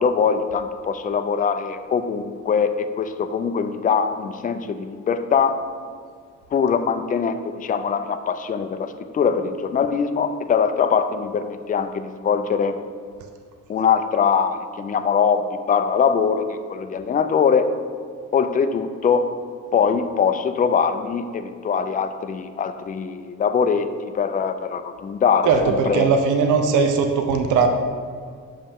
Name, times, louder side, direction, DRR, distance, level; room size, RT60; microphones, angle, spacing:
voice 1, 0.0-5.6 6.5-12.8 13.7-17.7 18.3-19.3 19.7-26.1, left 6 dB, 30° left, 9 dB, 0.4 m, -22 dB
voice 2, 25.5-27.7, right 5 dB, 80° right, 5 dB, 0.6 m, -19 dB
6.9 x 5.3 x 3.6 m, 2.1 s
cardioid pair, 90°, 30 cm